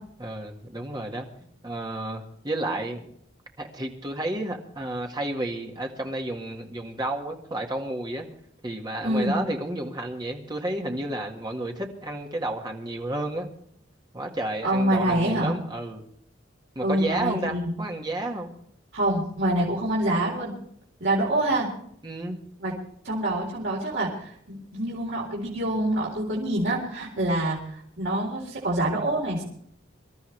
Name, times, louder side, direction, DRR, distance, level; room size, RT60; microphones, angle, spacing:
voice 1, 0.2-1.3 1.6-3.1 3.6-8.3 8.6-13.5 14.1-16.0 16.8-18.5 22.0-22.4, right 1 dB, 20° right, 2 dB, 1.9 m, -31 dB
voice 2, 9.0-9.4 14.6-15.5 16.8-17.7 18.9-20.5 21.0-21.7 22.6-22.7 23.0-29.4, right 1 dB, 70° right, -5 dB, 4.2 m, -26 dB
25.5 x 13.0 x 3.3 m, 0.67 s
head